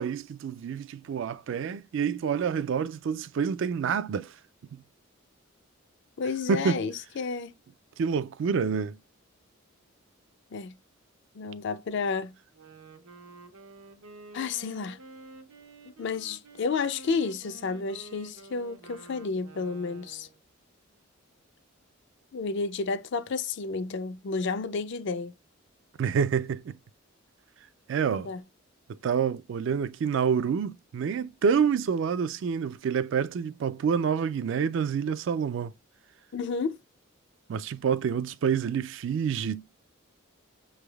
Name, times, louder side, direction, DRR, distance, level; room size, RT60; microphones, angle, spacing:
voice 1, 0.0-4.3 4.7-4.8 6.5-6.8 8.0-9.0 26.0-26.8 27.9-28.3 28.9-35.7 37.5-39.6, right 6 dB, 60° right, 0.3 m, -28 dB
voice 2, 6.2-7.5 10.5-10.7 11.3-12.3 14.3-15.0 16.0-20.3 22.3-25.3 28.1-28.4 36.3-36.8, left 4 dB, 60° left, 0.4 m, -31 dB
Wind instrument woodwind instrument, 12.5-20.4, right 3 dB, 90° right, 0.8 m, -50 dB
6.0 x 3.3 x 2.3 m
head